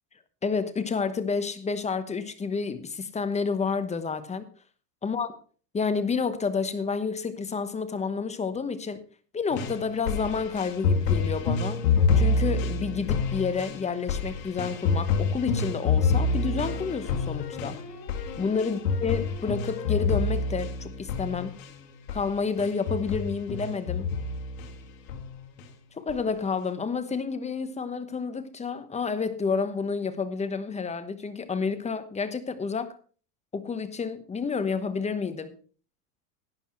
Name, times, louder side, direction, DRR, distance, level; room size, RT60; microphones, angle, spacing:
voice 1, 0.4-4.5 5.0-5.3 5.7-9.0 9.3-11.8 12.1-17.8 18.4-21.6 22.1-24.1 25.9-32.9 33.5-35.6, left 5 dB, 15° left, 1.0 m, -30 dB
sound 1, 9.5-21.7 22.1-22.3 22.6-24.7 25.1-25.7 26.1-26.2, left 4 dB, 80° left, 2.2 m, -27 dB
11.5 x 9.7 x 4.4 m
supercardioid pair, 120°, 47 cm